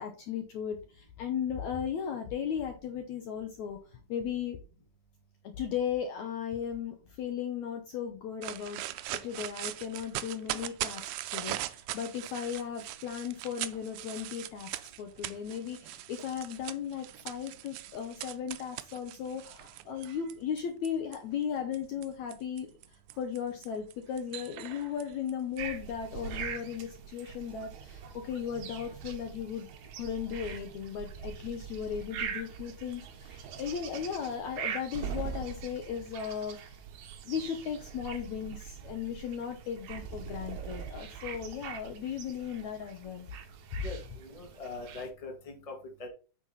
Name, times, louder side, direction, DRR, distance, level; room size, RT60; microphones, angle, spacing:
voice 1, 0.0-4.6 5.6-8.8 9.2-29.7 30.0-36.8 37.2-43.3, left 8 dB, 70° left, 5 dB, 2.0 m, -36 dB
sound 1, 8.4-21.2 21.7-25.6, right 15 dB, 85° right, 1.8 m, -40 dB
sound 2, 25.6-45.1, right 7 dB, 65° right, 2.1 m, -42 dB
voice 2, 43.8-45.7 46.0-46.1, left 3 dB, 15° left, 1 dB, 1.5 m, -42 dB
8.9 x 5.8 x 4.0 m, 0.34 s
omnidirectional pair, 4.1 m